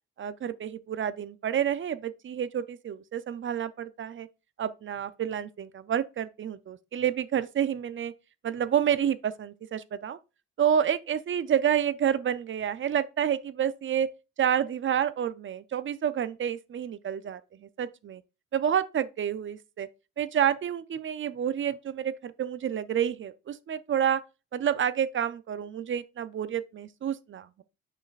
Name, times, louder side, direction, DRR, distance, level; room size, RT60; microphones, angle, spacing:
voice 1, 0.2-4.3 4.6-8.1 8.4-10.2 10.6-14.1 14.4-18.2 18.5-19.9 20.2-24.2 24.5-27.6, right 9 dB, 40° right, 0.5 m, -29 dB
6.4 x 6.3 x 2.4 m
cardioid pair, 90°, 30 cm